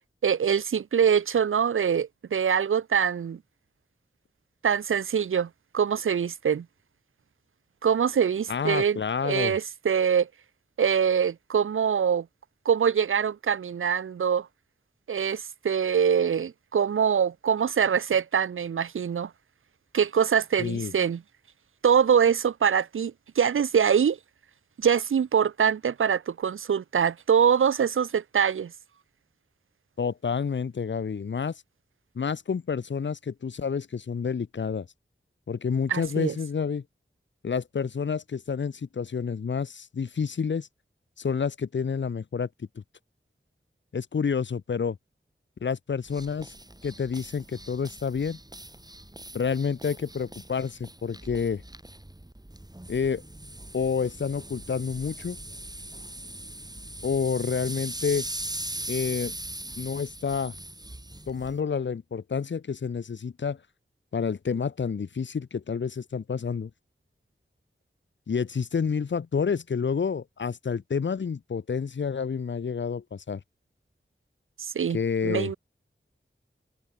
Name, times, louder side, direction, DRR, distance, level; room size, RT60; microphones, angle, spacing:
voice 1, 0.2-3.4 4.6-6.7 7.8-10.3 10.8-12.3 12.7-14.5 15.1-19.3 19.9-21.2 21.8-24.2 24.8-28.7 35.9-36.3 74.6-75.0 75.2-75.6, right 7 dB, 75° right, 0.4 m, -24 dB
voice 2, 8.5-9.6 20.6-20.9 30.0-31.6 32.2-34.9 35.5-36.8 37.4-40.7 41.2-42.5 42.8-42.9 43.9-45.0 45.6-46.5 46.8-48.4 49.3-51.6 52.9-53.2 53.7-55.4 57.0-58.3 58.9-59.3 59.8-60.6 61.3-63.6 64.1-66.7 68.3-73.4 74.9-75.5, left 6 dB, 60° left, 0.5 m, -29 dB
sound 1, 46.1-61.6, right 1 dB, 20° right, 2.0 m, -40 dB
wide cardioid pair, 55°, 21 cm